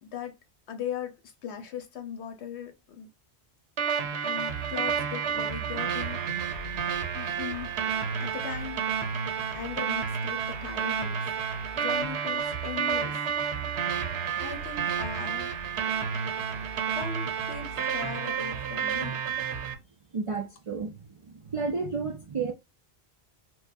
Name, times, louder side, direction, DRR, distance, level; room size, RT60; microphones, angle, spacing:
voice 1, 0.0-0.4 0.7-3.1 4.2-6.2 7.1-7.7 8.2-8.9 9.2-11.3 11.7-13.2 14.4-15.5 16.9-19.2, left 8 dB, 90° left, 1.1 m, -39 dB
sound 1, 3.8-19.7, right 7 dB, 90° right, 1.0 m, -30 dB
voice 2, 20.1-22.5, right 4 dB, 45° right, 0.4 m, -32 dB
4.6 x 2.1 x 2.6 m
omnidirectional pair, 1.1 m